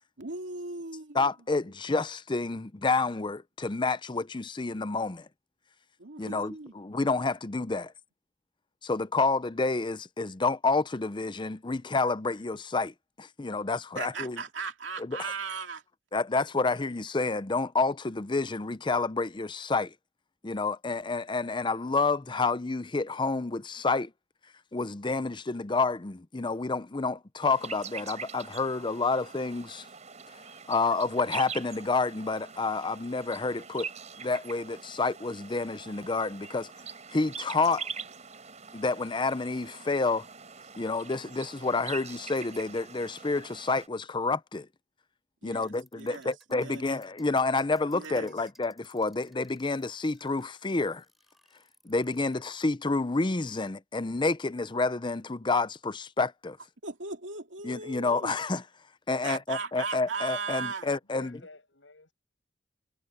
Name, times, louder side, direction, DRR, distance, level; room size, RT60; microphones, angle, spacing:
voice 1, 0.2-1.2 6.0-6.7 14.0-15.8 45.4-46.8 47.9-48.3 56.8-58.4 59.2-60.9, right 4 dB, 80° right, 2.5 m, -37 dB
voice 2, 1.1-5.2 6.2-7.9 8.8-12.9 13.2-14.4 15.0-15.2 16.1-19.9 20.4-24.1 24.7-29.8 30.7-33.9 34.2-36.7 37.1-37.9 38.7-40.3 40.8-44.7 45.4-51.0 51.9-56.6 57.6-58.6 59.1-61.4, left 3 dB, 25° left, 0.6 m, -29 dB
sound 1, 27.4-43.9, right 6 dB, 40° right, 4.9 m, -44 dB
sound 2, 45.6-52.5, equal, ahead, 7.3 m, -63 dB
voice 3, 61.0-62.1, left 3 dB, 80° left, 7.5 m, -51 dB
head